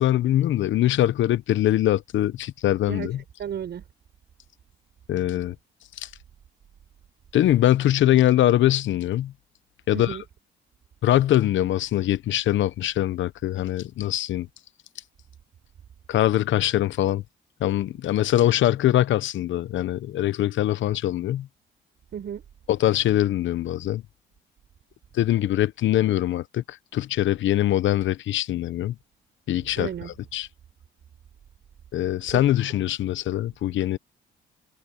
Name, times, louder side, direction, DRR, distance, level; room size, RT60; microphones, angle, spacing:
voice 1, 0.0-3.2 5.1-5.5 6.0-6.1 7.3-9.3 9.9-10.2 11.0-14.5 16.1-17.2 17.6-21.5 22.7-24.0 25.1-28.9 29.5-29.9 30.3-30.5 31.9-34.0, left 13 dB, 70° left, 0.8 m, -22 dB
voice 2, 2.9-3.8 9.9-10.2 22.1-22.4 29.8-30.1 32.3-32.4, right 9 dB, 60° right, 5.5 m, -33 dB
cardioid pair, 90°, 20 cm